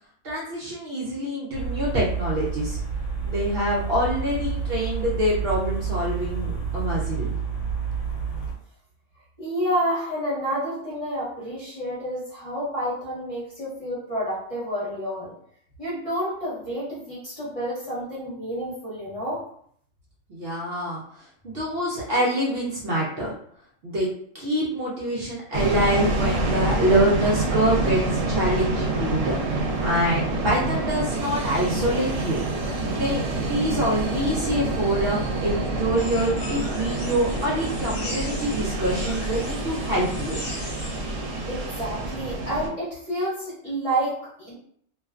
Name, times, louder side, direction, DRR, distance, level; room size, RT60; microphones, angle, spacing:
voice 1, 0.2-2.8 3.2-7.3 20.3-23.3 23.8-24.1 24.3-32.4 32.9-40.4, equal, 60° right, -5 dB, 0.7 m, -25 dB
sound 1, 1.5-8.5, right 6 dB, 80° left, 0.9 m, -29 dB
voice 2, 9.4-15.3 15.8-19.4 41.4-44.5, equal, 30° left, -9 dB, 1.0 m, -29 dB
sound 2, 25.5-42.7, right 2 dB, 85° right, 1.0 m, -27 dB
sound 3, 36.0-41.0, left 1 dB, 55° left, 0.9 m, -39 dB
2.4 x 2.2 x 2.4 m, 0.64 s
omnidirectional pair, 1.3 m